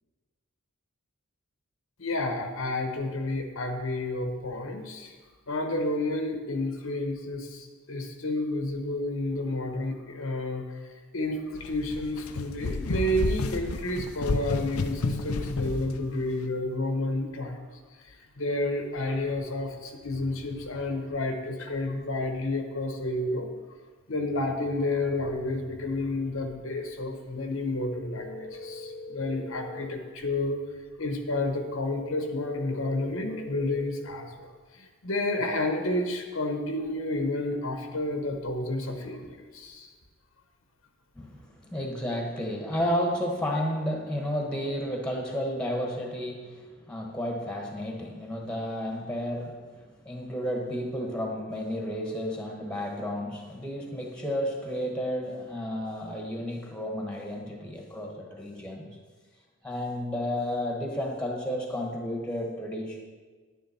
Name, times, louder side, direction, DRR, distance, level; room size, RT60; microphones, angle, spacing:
voice 1, 2.0-5.1 5.5-17.7 18.0-23.5 24.1-30.6 31.0-39.9, left 2 dB, 70° left, 5 dB, 1.1 m, -30 dB
sound 1, 11.6-15.9, left 3 dB, 90° left, 0.7 m, -31 dB
sound 2, 27.9-29.9 31.9-33.9, left 2 dB, 50° left, 1.0 m, -41 dB
voice 2, 41.1-58.9 59.6-63.0, equal, 5° left, 1 dB, 1.3 m, -32 dB
10.5 x 9.5 x 4.3 m, 1.4 s
head